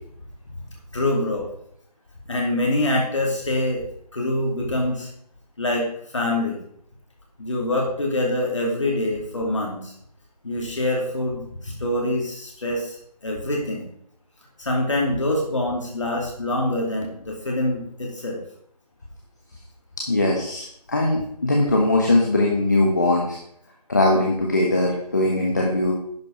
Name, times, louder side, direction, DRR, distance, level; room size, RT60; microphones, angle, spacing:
voice 1, 0.9-1.5 2.3-3.8 4.1-5.1 5.6-6.6 7.4-9.9 10.4-13.9 14.6-18.4, left 1 dB, 45° left, -1 dB, 2.4 m, -25 dB
voice 2, 20.1-23.4 23.9-25.9, left 2 dB, 25° left, -1 dB, 1.1 m, -20 dB
10.5 x 5.0 x 6.1 m, 0.68 s
figure-of-eight pair, 175°, 21 cm